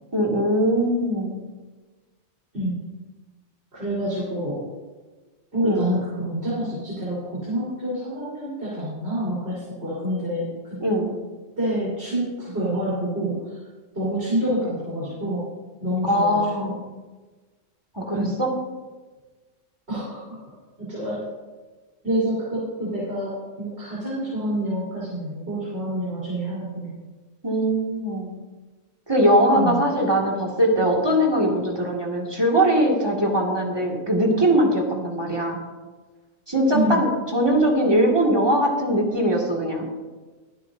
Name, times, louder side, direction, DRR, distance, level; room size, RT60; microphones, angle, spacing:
voice 1, 0.1-1.3 5.6-5.9 10.8-11.1 16.1-16.8 18.0-18.5 27.4-28.3 29.1-35.6 36.5-39.8, equal, 20° right, -1 dB, 2.2 m, -21 dB
voice 2, 3.7-4.7 5.5-10.5 11.6-13.4 13.9-15.5 15.8-16.7 18.1-18.3 19.9-20.3 20.8-21.3 22.0-26.9 29.5-29.8 36.7-37.0, right 1 dB, 50° right, -9 dB, 4.5 m, -27 dB
24.0 x 8.6 x 2.7 m, 1.3 s
omnidirectional pair, 1.4 m